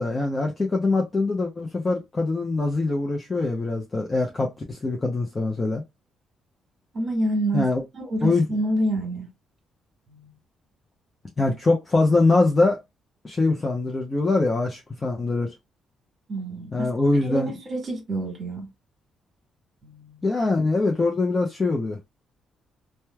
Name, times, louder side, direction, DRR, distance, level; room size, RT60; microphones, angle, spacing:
voice 1, 0.0-5.8 7.5-7.8 8.2-8.5 11.4-12.8 13.2-15.5 16.7-17.5 20.2-22.0, left 3 dB, 25° left, 0.6 m, -23 dB
voice 2, 6.9-7.7 7.9-9.3 10.1-10.3 16.3-18.7 19.8-20.2, right 1 dB, 35° right, 1.4 m, -28 dB
3.0 x 2.2 x 2.2 m
cardioid pair, 90°, 0 cm